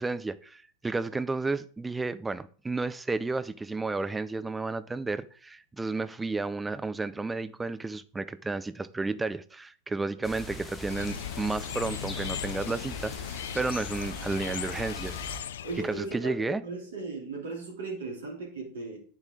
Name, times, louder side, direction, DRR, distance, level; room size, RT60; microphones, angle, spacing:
voice 1, 0.0-15.2 15.8-16.6, right 3 dB, 10° right, 0.5 m, -32 dB
sound 1, 10.2-15.4, left 2 dB, 15° left, 1.9 m, -42 dB
sound 2, 10.9-16.2, left 9 dB, 60° left, 0.4 m, -38 dB
voice 2, 15.6-19.0, right 3 dB, 60° right, 2.7 m, -37 dB
9.0 x 7.8 x 3.7 m
figure-of-eight pair, 90°, 0 cm